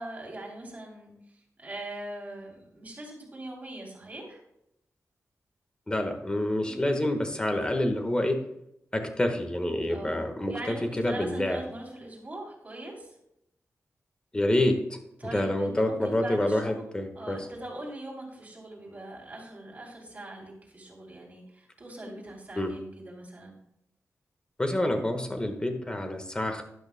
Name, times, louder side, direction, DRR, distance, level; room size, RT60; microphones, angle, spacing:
voice 1, 0.0-4.4 6.6-7.1 9.9-13.1 15.2-23.6, right 1 dB, 30° right, -1 dB, 3.2 m, -42 dB
voice 2, 5.9-8.4 8.9-11.6 14.3-15.0 15.3-17.5 22.5-22.7 24.6-26.6, left 1 dB, 15° left, 5 dB, 1.4 m, -27 dB
12.0 x 11.0 x 2.2 m, 0.79 s
wide cardioid pair, 145°, 5 cm